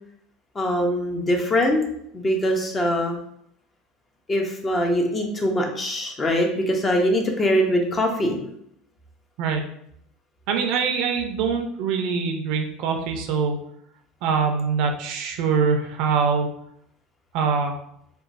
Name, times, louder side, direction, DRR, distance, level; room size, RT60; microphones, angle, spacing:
voice 1, 0.5-1.8 2.1-3.2 4.3-8.4, equal, 25° left, 2 dB, 0.6 m, -22 dB
voice 2, 10.5-13.6 14.2-16.5 17.3-17.8, right 5 dB, 65° right, 4 dB, 0.4 m, -23 dB
2.9 x 2.2 x 2.5 m, 0.72 s
supercardioid pair, 100°, 0 cm